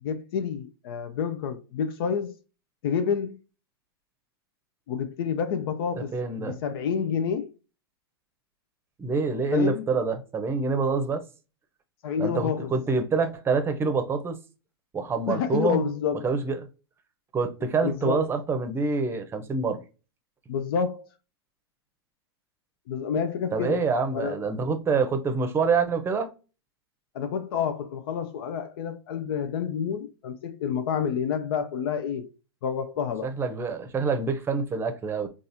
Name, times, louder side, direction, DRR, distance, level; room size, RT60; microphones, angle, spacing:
voice 1, 0.0-2.4 2.8-3.4 4.9-7.5 9.5-9.9 12.0-12.7 15.3-16.3 17.8-18.3 20.5-21.1 22.9-23.9 24.1-24.4 27.1-32.3 32.6-33.3, left 7 dB, 65° left, 0.5 m, -29 dB
voice 2, 5.9-6.6 9.0-11.2 12.2-14.4 14.9-15.9 16.2-16.7 17.3-19.8 23.5-26.3 33.2-35.3, right 4 dB, 20° right, 0.7 m, -26 dB
4.0 x 2.4 x 2.6 m
hypercardioid pair, 115°, 13 cm